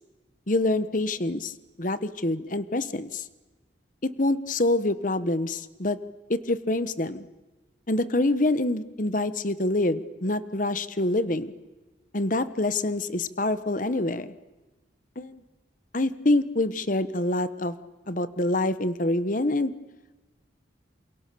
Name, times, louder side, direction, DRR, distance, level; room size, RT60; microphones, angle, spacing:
voice 1, 0.5-3.2 4.0-6.0 6.3-7.2 7.9-11.5 12.1-14.3 15.2-15.4 15.9-17.7 18.1-19.7, left 2 dB, 45° left, 14 dB, 1.2 m, -26 dB
28.5 x 28.0 x 6.9 m, 1.2 s
head